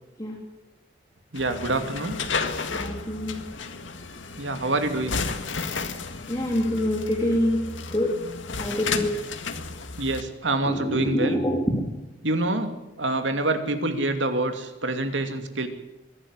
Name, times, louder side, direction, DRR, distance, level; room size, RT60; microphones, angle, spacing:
sound 1, 1.3-10.2, left 4 dB, 85° left, 1.9 m, -33 dB
voice 1, 1.3-2.2 4.4-5.2 10.0-11.4 12.2-15.7, right 2 dB, 80° right, 7 dB, 2.6 m, -26 dB
voice 2, 2.7-3.3 6.3-7.6 7.9-8.1 8.6-9.1 10.6-11.6, left 1 dB, 20° left, -2 dB, 3.3 m, -25 dB
23.0 x 12.5 x 9.8 m, 1.0 s
head